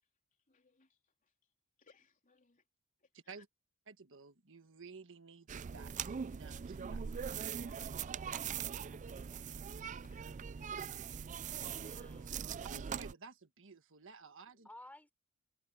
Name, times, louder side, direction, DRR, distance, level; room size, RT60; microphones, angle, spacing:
voice 1, 0.0-1.5 1.8-2.7 3.0-3.4 8.3-8.5 9.9-11.2 14.5-14.6, left 5 dB, 40° left, 3.6 m, -68 dB
voice 2, 3.9-8.1 12.7-14.7, right 4 dB, 60° right, 1.5 m, -55 dB
sound 1, 5.5-13.1, right 7 dB, 35° right, 0.4 m, -41 dB
voice 3, 8.9-9.5 11.6-12.6 14.6-15.1, left 1 dB, 5° left, 3.6 m, -57 dB
head